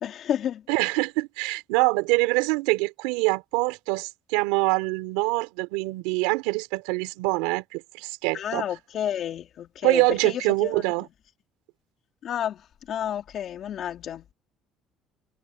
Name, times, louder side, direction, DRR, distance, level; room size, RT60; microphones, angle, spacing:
voice 1, 0.0-0.6 8.3-10.8 12.2-12.6 12.9-14.3, left 10 dB, 55° left, 3.1 m, -31 dB
voice 2, 0.7-8.7 9.8-11.1, right 25 dB, 90° right, 4.0 m, -25 dB
supercardioid pair, 90°, 0 cm